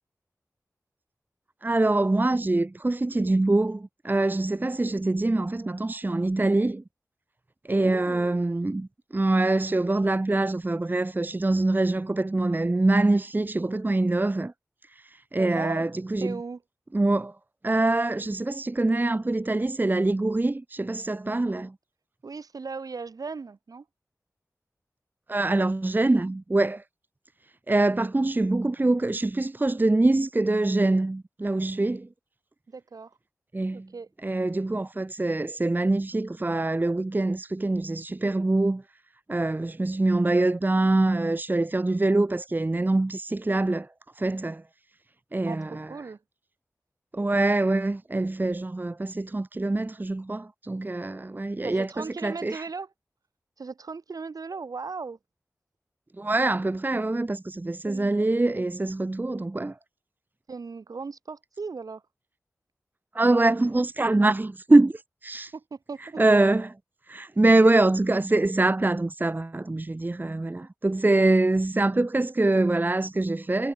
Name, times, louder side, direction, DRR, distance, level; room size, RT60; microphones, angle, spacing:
voice 1, 1.6-6.8 7.6-14.5 15.0-16.4 16.9-17.4 17.6-21.7 25.3-26.8 27.7-32.1 33.5-33.9 34.2-38.8 39.3-43.9 44.2-44.6 45.3-45.9 47.1-52.6 56.2-59.8 63.1-65.5 66.0-66.8 67.1-73.7, right 2 dB, 30° right, 0.8 m, -24 dB
voice 2, 7.7-8.5 15.4-15.9 16.2-16.6 22.2-23.8 32.7-33.2 33.7-34.1 45.5-45.6 45.9-46.2 51.6-52.9 53.6-55.2 57.8-58.1 60.5-62.0 65.5-66.2, right 4 dB, 80° right, 4.5 m, -37 dB
cardioid pair, 45°, 6 cm